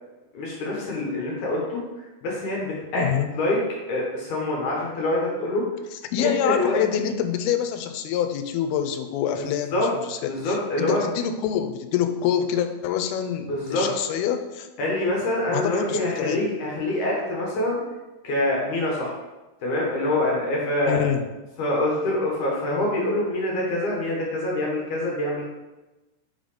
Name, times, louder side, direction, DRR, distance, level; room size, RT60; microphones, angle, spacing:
voice 1, 0.3-1.8 2.2-3.0 3.3-3.6 3.9-5.6 6.2-6.8 9.7-9.9 10.2-11.0 13.5-13.9 14.8-17.8 18.2-19.1 19.6-21.1 21.6-25.4, left 1 dB, 65° left, -3 dB, 2.3 m, -25 dB
voice 2, 2.9-3.3 6.1-14.7 15.5-16.5 20.9-21.2, left 9 dB, 85° left, 7 dB, 2.5 m, -26 dB
5.7 x 3.9 x 5.0 m, 1.1 s
omnidirectional pair, 4.5 m